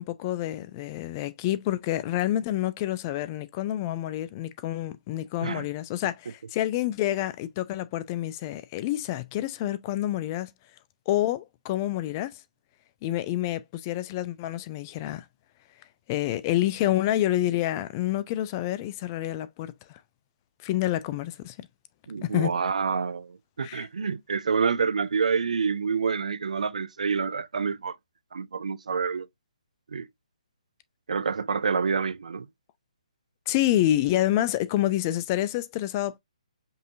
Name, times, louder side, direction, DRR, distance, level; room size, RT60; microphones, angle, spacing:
voice 1, 0.0-10.5 11.1-12.4 13.0-15.2 16.1-20.0 20.6-21.6 22.2-22.5 23.6-23.9 33.5-36.2, left 13 dB, 30° left, 0.4 m, -28 dB
voice 2, 22.1-28.0 28.3-29.3 29.9-30.1 31.1-32.5, right 5 dB, 70° right, 0.5 m, -27 dB
5.4 x 2.8 x 2.5 m
hypercardioid pair, 145°, 4 cm